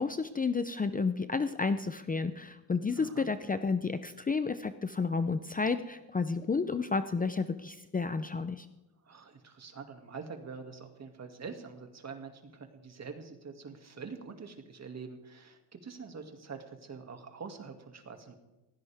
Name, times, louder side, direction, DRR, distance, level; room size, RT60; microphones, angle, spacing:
voice 1, 0.0-8.7, left 4 dB, 20° left, 11 dB, 0.6 m, -31 dB
voice 2, 3.0-3.3 9.0-18.3, right 5 dB, 40° right, 5 dB, 2.4 m, -45 dB
19.5 x 16.5 x 3.6 m, 1.0 s
cardioid pair, 100°, 41 cm